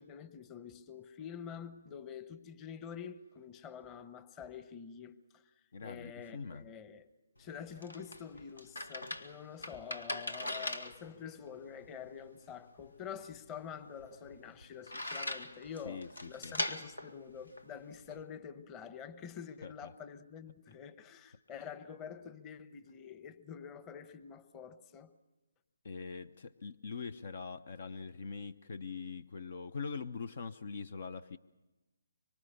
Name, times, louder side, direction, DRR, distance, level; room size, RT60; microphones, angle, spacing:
voice 1, 0.0-5.5 5.8-7.1 7.4-25.1, left 7 dB, 20° left, 1.1 m, -47 dB
voice 2, 5.7-6.6 15.8-16.5 19.6-19.9 21.5-21.6 25.8-31.4, left 5 dB, 55° left, 0.8 m, -43 dB
sound 1, 7.4-18.2, left 1 dB, 85° left, 2.1 m, -42 dB
25.0 x 24.5 x 6.8 m
figure-of-eight pair, 150°, 0 cm